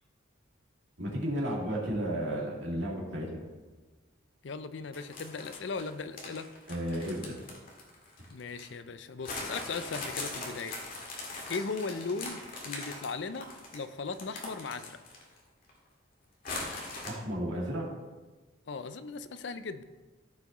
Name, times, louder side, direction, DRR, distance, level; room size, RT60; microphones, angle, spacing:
voice 1, 1.0-3.4 6.7-7.3 17.0-17.9, equal, 65° right, -3 dB, 2.4 m, -33 dB
voice 2, 4.4-6.5 8.3-10.8 11.5-15.0 18.7-19.8, left 4 dB, 65° left, 11 dB, 0.5 m, -38 dB
sound 1, 4.9-8.7 9.2-15.4 15.7-15.8 16.4-17.1, left 2 dB, 45° left, 2.0 m, -41 dB
14.5 x 5.8 x 3.1 m, 1.3 s
head